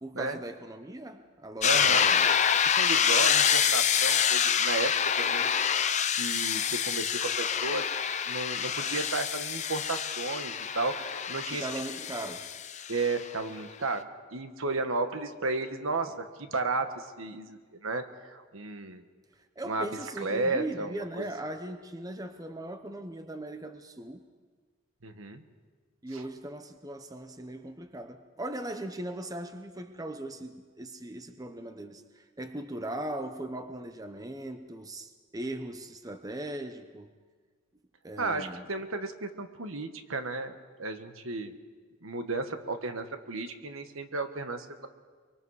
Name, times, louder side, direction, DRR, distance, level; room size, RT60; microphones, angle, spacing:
voice 1, 0.0-2.3 11.5-12.5 19.4-24.2 26.0-37.1 38.0-38.7, right 1 dB, 15° right, 8 dB, 0.8 m, -39 dB
sound 1, 1.6-13.3, left 8 dB, 35° left, 0.7 m, -27 dB
voice 2, 1.6-2.1 2.6-5.6 6.2-7.8 8.3-11.7 12.9-19.0 19.7-19.9 20.2-21.2 25.0-25.4 38.2-41.5 42.0-44.9, right 3 dB, 70° right, 8 dB, 1.3 m, -33 dB
24.0 x 24.0 x 4.8 m, 1.5 s
head